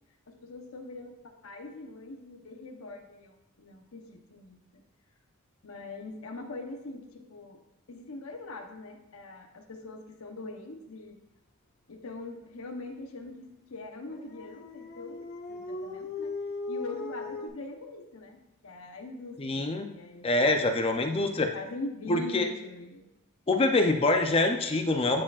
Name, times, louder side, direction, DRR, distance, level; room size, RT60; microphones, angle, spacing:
voice 1, 0.3-4.6 5.6-7.6 7.9-11.2 11.9-16.4 16.7-20.6 21.1-23.1, left 2 dB, 70° left, 4 dB, 0.8 m, -42 dB
Dog, 14.0-17.5, left 3 dB, 45° left, 0.9 m, -38 dB
voice 2, 19.4-19.9 20.2-21.5 22.1-22.5 23.5-25.2, left 2 dB, 25° left, 5 dB, 0.5 m, -25 dB
9.8 x 4.8 x 2.4 m, 0.90 s
head